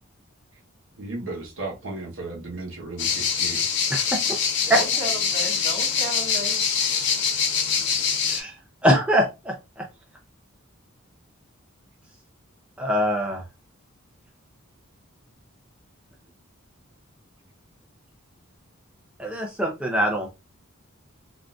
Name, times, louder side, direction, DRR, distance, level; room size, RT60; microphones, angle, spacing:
voice 1, 1.0-3.6, right 2 dB, 70° right, 0.9 m, -35 dB
sound 1, 3.0-8.4, left 6 dB, 60° left, 0.7 m, -24 dB
voice 2, 4.6-6.6, right 1 dB, 35° right, 1.6 m, -34 dB
voice 3, 8.8-9.8 12.8-13.4 19.2-20.3, equal, 5° right, 0.4 m, -23 dB
3.6 x 2.4 x 2.3 m
head